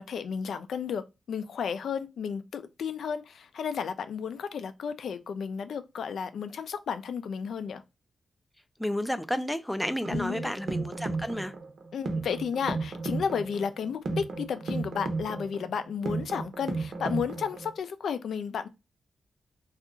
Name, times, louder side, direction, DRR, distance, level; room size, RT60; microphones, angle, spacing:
voice 1, 0.0-7.8 10.1-10.5 11.9-18.7, left 6 dB, 85° left, 0.3 m, -33 dB
voice 2, 8.8-11.5, left 1 dB, 5° left, 0.3 m, -31 dB
sound 1, 9.8-17.8, right 3 dB, 60° right, 0.7 m, -34 dB
2.7 x 2.4 x 3.6 m
wide cardioid pair, 135°, 0 cm